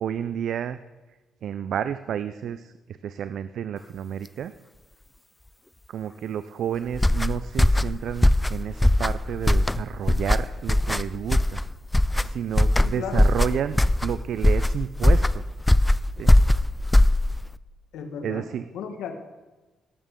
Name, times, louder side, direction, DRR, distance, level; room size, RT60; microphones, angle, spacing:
voice 1, 0.0-0.8 1.4-2.7 3.0-4.5 5.9-11.6 12.2-15.4 16.2-16.3 18.2-18.6, right 9 dB, 70° right, 13 dB, 0.4 m, -30 dB
sound 1, 6.9-17.6, left 1 dB, 10° left, 0.3 m, -20 dB
voice 2, 12.8-13.3 17.9-18.5 18.7-19.1, left 6 dB, 85° left, 5 dB, 1.5 m, -34 dB
18.0 x 8.2 x 3.7 m, 1.2 s
cardioid pair, 90°, 0 cm